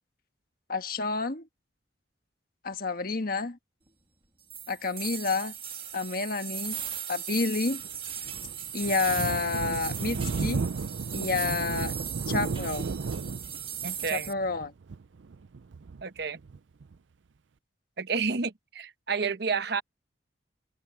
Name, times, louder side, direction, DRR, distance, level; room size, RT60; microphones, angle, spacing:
voice 1, 0.7-1.4 2.6-3.6 4.7-5.5 5.9-6.8 7.1-7.8 8.7-10.6 11.1-12.0 12.3-12.9 14.1-14.7, left 4 dB, 55° left, 1.4 m, -29 dB
sound 1, 4.5-14.3, right 9 dB, 30° right, 2.0 m, -37 dB
Thunder, 7.8-16.9, right 4 dB, 85° right, 0.5 m, -34 dB
voice 2, 13.8-14.3 16.0-16.4 18.0-19.8, right 5 dB, 60° right, 1.0 m, -30 dB
head